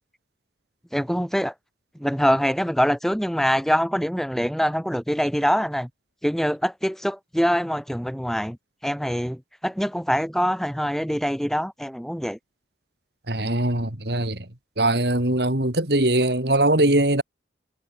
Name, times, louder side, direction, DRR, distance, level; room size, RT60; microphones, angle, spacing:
voice 1, 0.9-1.5 2.0-5.9 6.2-8.6 8.8-12.4, equal, ahead, 6.9 m, -24 dB
voice 2, 13.3-14.4 14.8-17.2, right 1 dB, 65° right, 3.3 m, -21 dB
head